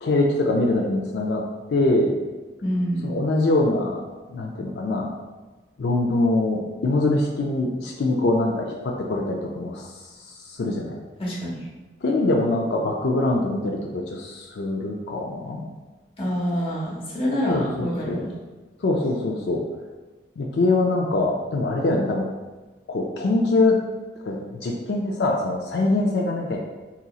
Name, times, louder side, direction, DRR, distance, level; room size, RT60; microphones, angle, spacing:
voice 1, 0.0-1.4 1.7-2.2 3.0-4.0 4.3-5.1 5.8-9.9 10.5-10.9 12.0-15.6 17.5-18.2 18.8-19.6 20.4-22.3 22.9-23.8 24.2-26.6, left 2 dB, 80° left, 0 dB, 0.4 m, -23 dB
voice 2, 2.6-3.1 11.2-11.7 16.2-18.3, equal, 30° left, -4 dB, 0.8 m, -26 dB
3.9 x 2.9 x 2.3 m, 1.2 s
head